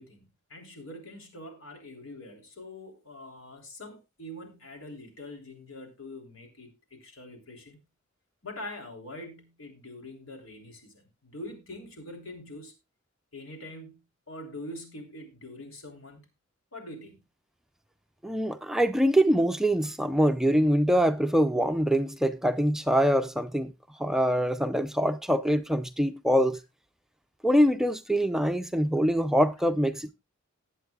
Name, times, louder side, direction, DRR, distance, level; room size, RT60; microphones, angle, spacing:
voice 1, 0.0-7.8 8.4-12.7 13.3-14.0 14.3-16.3 16.7-17.2 18.6-18.7, left 1 dB, 80° left, 3.4 m, -44 dB
voice 2, 18.2-23.7 24.0-26.6 27.4-30.1, equal, ahead, 0.5 m, -24 dB
19.0 x 8.0 x 2.3 m
head